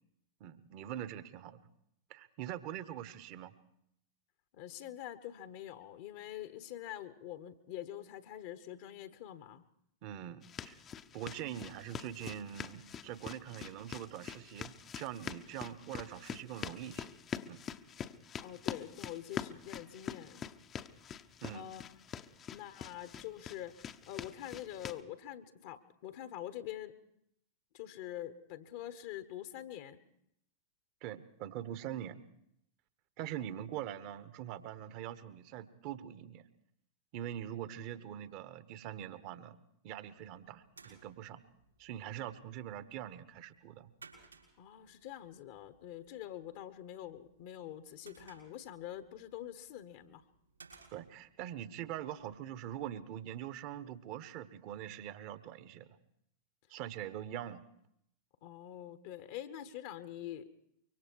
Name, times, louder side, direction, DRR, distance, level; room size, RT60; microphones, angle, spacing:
voice 1, 0.4-1.6 2.1-3.5 10.0-10.8 11.1-17.1 17.5-17.6 21.4-21.7 31.0-32.2 33.2-36.4 37.1-39.6 39.8-41.4 41.8-43.9 50.9-56.0 56.7-57.6, right 11 dB, 45° right, 14 dB, 1.2 m, -43 dB
voice 2, 4.5-9.6 18.4-20.5 21.5-21.8 22.5-26.9 27.7-30.0 44.6-50.2 58.4-60.5, left 12 dB, 50° left, 11 dB, 1.1 m, -45 dB
sound 1, 10.4-25.0, left 8 dB, 25° left, 0.8 m, -45 dB
sound 2, 40.2-53.0, right 4 dB, 80° right, 6.0 m, -63 dB
25.0 x 23.5 x 4.6 m, 0.73 s
figure-of-eight pair, 90°, 0 cm